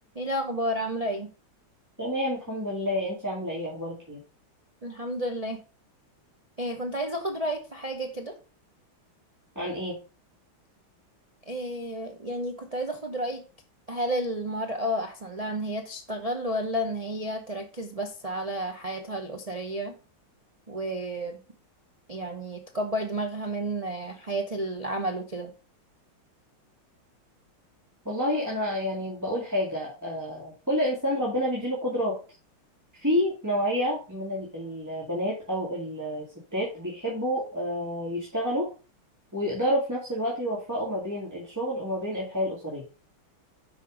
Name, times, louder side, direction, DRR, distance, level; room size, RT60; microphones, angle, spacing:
voice 1, 0.1-1.3 4.8-5.6 6.6-8.3 11.5-13.4 13.9-19.9 20.7-21.4 22.1-25.5, right 1 dB, 65° right, 3 dB, 0.3 m, -31 dB
voice 2, 2.0-4.2 9.6-10.0 28.1-32.2 32.9-36.3 36.5-38.7 39.3-42.8, equal, 10° right, -5 dB, 1.9 m, -29 dB
6.5 x 5.3 x 5.0 m, 0.33 s
omnidirectional pair, 2.3 m